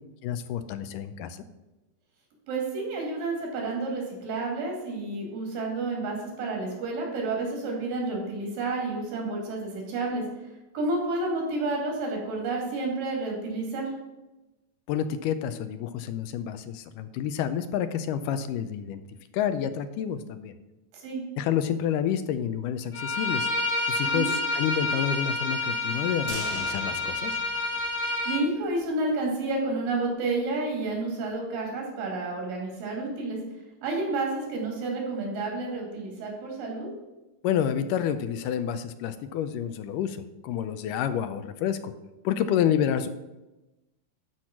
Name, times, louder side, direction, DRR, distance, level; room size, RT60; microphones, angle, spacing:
voice 1, 0.2-1.4 14.9-19.0 19.3-20.5 21.4-23.5 23.9-27.3 37.4-40.2 40.4-41.9 42.2-43.1, left 9 dB, 80° left, 11 dB, 2.2 m, -29 dB
voice 2, 2.5-10.2 10.7-13.9 20.9-21.2 24.1-24.3 28.2-33.4 33.8-36.9, right 2 dB, 90° right, 0 dB, 4.2 m, -30 dB
Bowed string instrument, 22.9-28.4, left 2 dB, 60° left, 3.4 m, -29 dB
sound 1, 26.3-28.4 28.7-28.8 29.2-29.3, right 1 dB, 35° right, 2.9 m, -41 dB
12.0 x 4.6 x 5.9 m, 1.0 s
omnidirectional pair, 3.8 m